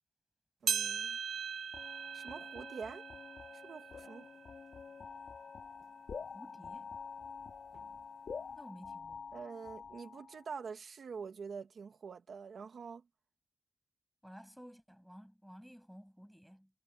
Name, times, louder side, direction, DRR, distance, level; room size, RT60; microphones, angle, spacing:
voice 1, 0.6-1.2 2.1-3.0 3.5-4.3 9.3-13.0, right 5 dB, 65° right, 1.6 m, -46 dB
sound 1, 0.7-5.3 5.8-5.9 6.7-6.8 7.7-7.8, right 7 dB, 90° right, 0.9 m, -40 dB
sound 2, 1.7-10.4, left 5 dB, 65° left, 3.4 m, -48 dB
voice 2, 6.3-6.9 8.5-9.3 14.2-16.7, equal, ahead, 6.5 m, -54 dB
wide cardioid pair, 150°, 0 cm